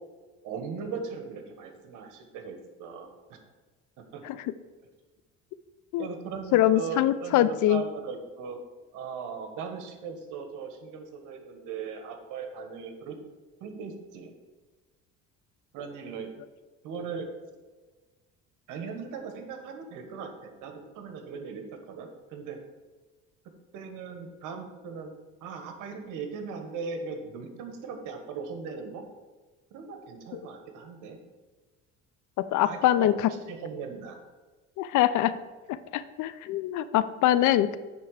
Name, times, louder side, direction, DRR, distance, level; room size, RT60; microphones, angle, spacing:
voice 1, 0.4-3.4 4.1-4.2 6.0-8.6 8.9-13.2 13.6-14.3 15.7-16.3 16.8-17.3 18.7-22.6 23.7-25.1 25.4-29.0 29.7-31.2 32.6-33.2 33.5-34.2, right 5 dB, 80° right, 5 dB, 1.4 m, -38 dB
voice 2, 6.5-7.8 30.3-30.4 32.4-33.1 34.8-35.3 35.7-37.8, left 13 dB, 70° left, 14 dB, 0.6 m, -24 dB
8.9 x 3.5 x 6.4 m, 1.3 s
cardioid pair, 100°, 31 cm